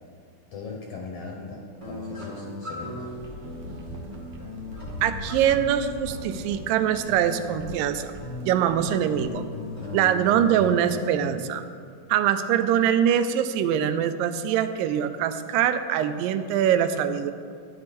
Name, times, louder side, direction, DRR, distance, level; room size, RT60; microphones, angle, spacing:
voice 1, 0.5-3.1, left 4 dB, 65° left, 0 dB, 1.6 m, -39 dB
sound 1, 1.8-10.8, left 1 dB, 25° right, 0.6 m, -38 dB
sound 2, 3.0-9.4, left 1 dB, 60° right, 1.4 m, -41 dB
voice 2, 5.0-8.1 8.4-9.4 9.9-11.6 12.1-17.3, right 9 dB, 85° right, 10 dB, 2.3 m, -23 dB
13.5 x 9.6 x 4.2 m, 2.1 s
omnidirectional pair, 3.9 m